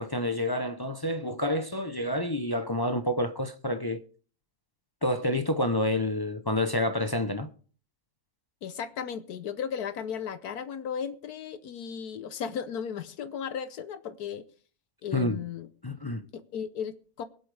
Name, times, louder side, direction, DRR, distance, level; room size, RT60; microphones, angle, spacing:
voice 1, 0.0-4.0 5.0-7.5 15.1-15.4 15.8-16.2, left 1 dB, 35° left, 0.3 m, -28 dB
voice 2, 8.6-14.5 15.0-15.7 16.3-17.3, left 7 dB, 70° left, 1.3 m, -35 dB
23.0 x 8.2 x 3.3 m
omnidirectional pair, 1.7 m